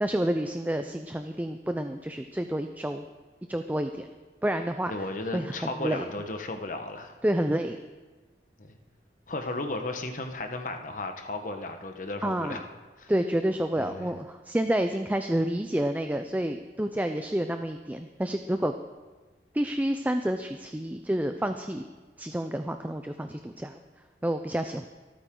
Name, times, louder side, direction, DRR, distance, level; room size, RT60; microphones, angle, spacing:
voice 1, 0.0-3.1 3.5-4.1 4.4-4.9 5.3-6.1 7.2-7.8 12.2-12.6 13.1-18.7 19.5-21.8 22.2-23.8 24.2-24.8, right 1 dB, 10° right, 7 dB, 0.4 m, -29 dB
voice 2, 4.9-7.2 8.6-8.8 9.3-12.7 13.0-13.1 13.8-14.1, left 2 dB, 45° left, 5 dB, 1.2 m, -35 dB
26.0 x 9.1 x 3.8 m, 1.3 s
head